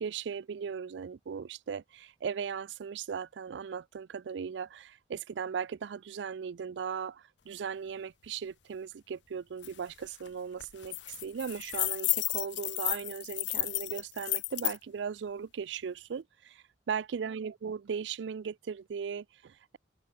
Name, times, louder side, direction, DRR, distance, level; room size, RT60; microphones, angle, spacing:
voice 1, 0.0-19.8, right 6 dB, 75° right, 0.4 m, -38 dB
sound 1, 9.6-9.7 10.0-10.3 10.6-14.8, left 20 dB, 85° left, 0.8 m, -33 dB
head